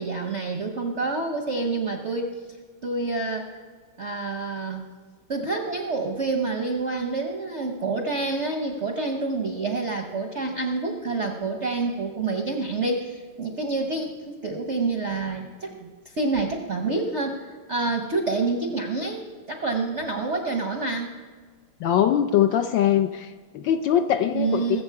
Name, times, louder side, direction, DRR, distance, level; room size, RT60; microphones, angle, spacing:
voice 1, 0.0-2.3 2.8-3.5 4.0-4.9 5.3-15.9 16.2-19.2 19.5-21.1 24.3-24.8, right 3 dB, 55° right, 3 dB, 0.8 m, -27 dB
voice 2, 21.8-24.8, left 10 dB, 75° left, 7 dB, 1.1 m, -22 dB
21.0 x 7.5 x 4.6 m, 1.5 s
omnidirectional pair, 2.4 m